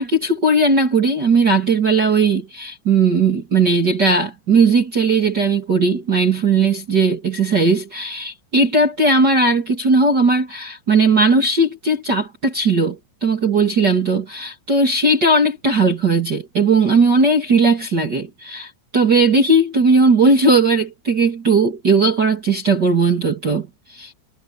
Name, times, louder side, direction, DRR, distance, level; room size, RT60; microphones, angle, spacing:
voice 1, 0.0-24.1, right 3 dB, 40° right, 1.5 m, -17 dB
omnidirectional pair, 5.9 m